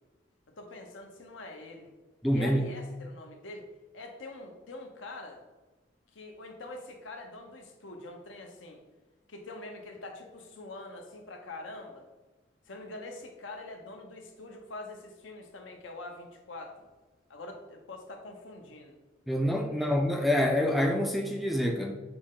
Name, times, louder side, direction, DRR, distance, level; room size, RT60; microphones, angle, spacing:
voice 1, 0.6-1.9 2.3-3.7 3.9-5.4 6.1-8.8 9.3-12.1 12.7-16.9 17.3-19.0 19.7-19.9, left 2 dB, 80° left, 3 dB, 0.8 m, -44 dB
voice 2, 2.2-2.7 19.3-21.9, equal, ahead, 2 dB, 0.3 m, -26 dB
6.0 x 2.1 x 3.7 m, 1.2 s
head